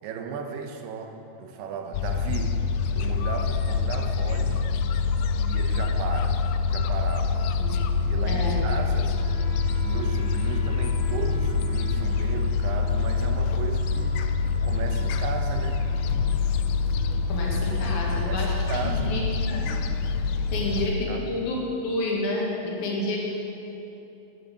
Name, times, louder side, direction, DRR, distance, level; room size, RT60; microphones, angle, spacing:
voice 1, 0.0-2.7 2.9-4.7 5.5-7.5 8.1-9.3 9.7-14.3 14.6-15.9 17.7-17.8 18.1-19.2 20.5-20.7 21.1-21.4, right 6 dB, 85° right, 5 dB, 2.8 m, -35 dB
Gull seagull, 1.9-20.9, left 5 dB, 90° left, 2.7 m, -25 dB
voice 2, 8.2-8.6 17.0-18.5 18.8-19.8 20.5-23.2, left 2 dB, 70° left, -3 dB, 3.6 m, -30 dB
Wind instrument woodwind instrument, 9.1-19.1, right 2 dB, 20° right, 2.6 m, -46 dB
10.5 x 10.0 x 6.6 m, 2.9 s
omnidirectional pair, 4.7 m